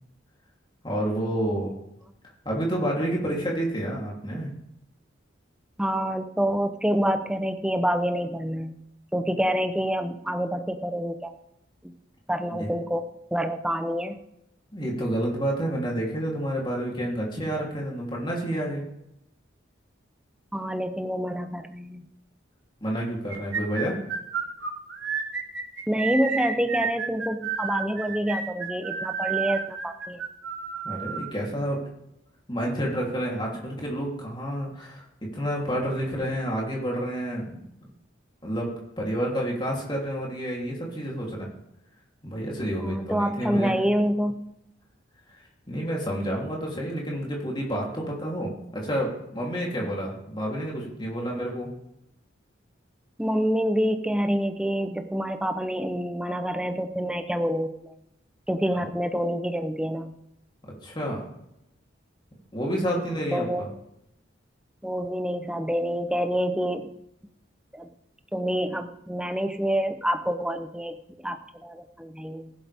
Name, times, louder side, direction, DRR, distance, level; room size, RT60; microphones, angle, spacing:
voice 1, 0.8-1.7 2.4-4.5 12.6-12.7 14.7-18.8 22.8-24.0 30.8-31.8 32.5-35.0 35.3-37.6 38.4-38.7 39.0-41.5 42.2-43.7 45.3-45.4 45.7-51.7 58.7-58.8 60.8-61.2 62.5-63.7, equal, 25° left, -3 dB, 3.3 m, -29 dB
voice 2, 5.8-8.8 9.1-11.3 11.8-11.9 12.3-13.0 13.3-14.2 20.5-22.1 25.9-30.2 42.8-44.4 53.2-57.9 58.5-60.1 63.3-63.6 64.8-66.9 67.7-67.9 68.3-72.5, equal, 5° right, 7 dB, 0.8 m, -27 dB
sound 1, 23.3-31.3, right 6 dB, 70° right, 1.4 m, -31 dB
16.0 x 11.5 x 3.6 m, 0.82 s
head